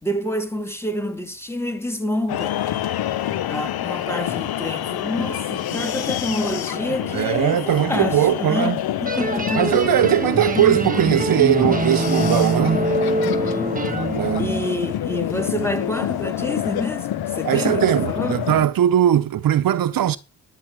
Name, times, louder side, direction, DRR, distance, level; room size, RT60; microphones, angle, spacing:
voice 1, 0.0-2.6 3.5-9.8 13.2-18.4, left 1 dB, 5° left, 2.8 m, -28 dB
sound 1, 2.3-18.7, left 12 dB, 90° left, 1.1 m, -27 dB
voice 2, 5.7-6.0 7.1-8.8 9.6-12.8 14.2-14.5 17.4-20.2, right 11 dB, 70° right, 0.8 m, -20 dB
sound 2, 9.0-14.7, right 3 dB, 25° right, 1.8 m, -24 dB
12.0 x 8.5 x 4.8 m
cardioid pair, 75°, 36 cm